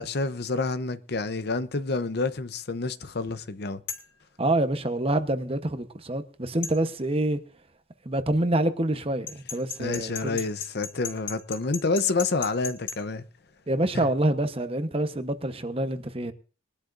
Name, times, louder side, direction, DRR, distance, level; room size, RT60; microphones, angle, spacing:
voice 1, 0.0-3.8 9.8-13.2, left 3 dB, 60° left, 0.8 m, -28 dB
sound 1, 3.9-4.1 6.6-6.8 9.3-13.0, left 7 dB, 75° left, 2.9 m, -35 dB
voice 2, 4.4-7.4 8.1-10.4 13.7-16.3, right 1 dB, 30° right, 1.0 m, -26 dB
21.5 x 11.5 x 2.6 m
head